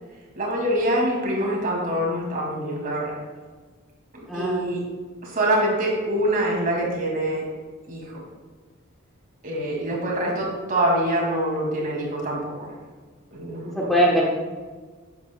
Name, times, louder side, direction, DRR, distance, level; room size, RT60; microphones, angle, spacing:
voice 1, 0.3-3.2 4.1-4.8 5.2-7.5 7.9-8.2 9.4-12.7 13.3-14.2, right 1 dB, 45° right, -2 dB, 2.5 m, -25 dB
voice 2, 4.3-4.7 13.7-14.2, equal, ahead, -4 dB, 1.0 m, -21 dB
11.5 x 8.2 x 2.3 m, 1.4 s
head